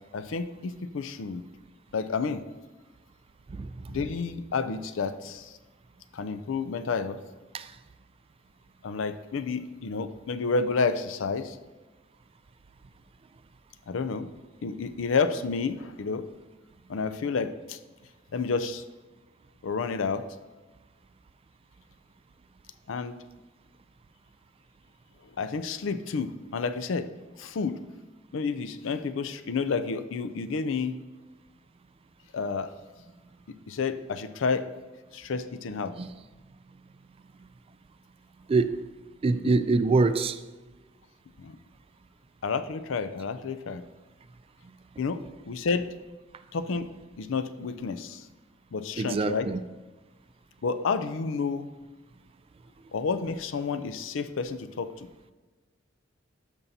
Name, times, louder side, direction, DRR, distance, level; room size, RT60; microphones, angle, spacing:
voice 1, 0.1-1.4 1.9-2.4 3.9-5.6 6.1-7.2 8.8-11.6 13.9-14.3 14.6-16.2 16.9-17.8 18.3-18.8 19.6-20.2 22.9-23.1 25.4-27.1 27.4-27.8 28.3-30.9 32.3-32.7 33.7-34.6 35.1-35.9 41.4-41.6 42.4-43.8 45.0-45.2 45.5-45.9 46.5-46.9 47.2-48.3 48.7-49.5 50.6-51.7 52.9-55.1, left 4 dB, 85° left, 0.5 m, -30 dB
voice 2, 3.5-4.0 7.5-7.8 36.0-36.1 38.5-38.9 39.2-40.4 49.0-49.6, right 3 dB, 30° right, 0.3 m, -25 dB
13.0 x 5.4 x 2.7 m
head